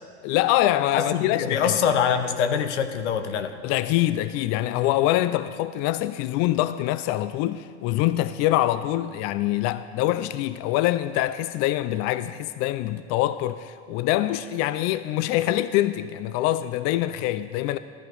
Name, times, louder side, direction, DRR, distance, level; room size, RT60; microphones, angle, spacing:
voice 1, 0.2-1.8 3.6-17.8, left 14 dB, 50° left, 0.4 m, -24 dB
voice 2, 0.9-3.6, left 7 dB, 85° left, 0.9 m, -24 dB
13.0 x 11.0 x 4.0 m
hypercardioid pair, 90°, 34 cm